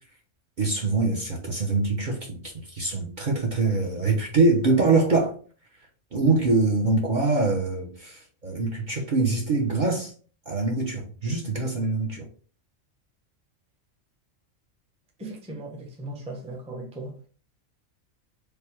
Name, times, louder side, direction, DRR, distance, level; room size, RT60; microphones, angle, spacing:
voice 1, 0.6-5.3 6.1-10.1 10.5-12.3, right 3 dB, 45° right, 0.8 m, -24 dB
voice 2, 15.2-17.1, right 2 dB, 5° right, 0.6 m, -37 dB
3.4 x 2.2 x 4.3 m
omnidirectional pair, 1.3 m